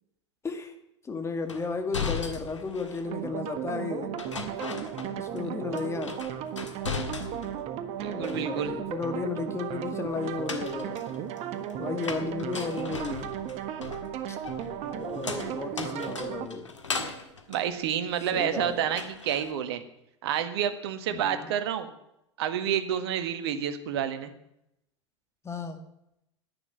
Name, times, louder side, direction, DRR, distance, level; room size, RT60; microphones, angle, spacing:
voice 1, 1.0-4.1 5.2-6.2 8.0-11.0 11.8-13.3 14.3-14.4 15.0-16.7 18.3-18.9 21.1-21.5 25.4-25.8, left 4 dB, 15° left, 7 dB, 2.1 m, -34 dB
sound 1, 1.5-3.1 4.2-5.5 5.8-7.6 8.0-8.8 10.2-18.5 18.9-19.5, left 5 dB, 80° left, 1.7 m, -38 dB
sound 2, 3.1-16.5, right 10 dB, 40° right, 1.4 m, -35 dB
voice 2, 8.0-8.7 17.5-19.8 20.2-21.9 22.4-24.3, right 9 dB, 55° right, 9 dB, 1.6 m, -29 dB
10.5 x 10.0 x 9.6 m, 0.83 s
figure-of-eight pair, 80°, 16 cm